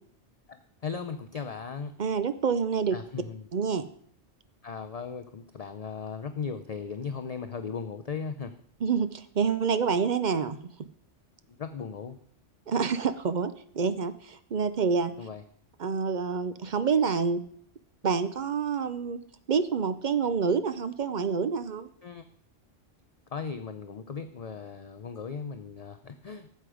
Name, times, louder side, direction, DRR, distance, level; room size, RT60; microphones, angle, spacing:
voice 1, 0.5-1.9 2.9-3.5 4.6-8.5 11.5-12.2 15.2-15.4 22.0-22.2 23.3-26.5, left 5 dB, 45° left, 8 dB, 0.6 m, -37 dB
voice 2, 2.0-3.0 3.5-3.8 8.8-10.6 12.7-15.1 15.8-17.4 18.0-19.2 19.5-21.9, right 6 dB, 50° right, 12 dB, 0.6 m, -27 dB
13.0 x 7.7 x 4.9 m, 0.63 s
omnidirectional pair, 1.2 m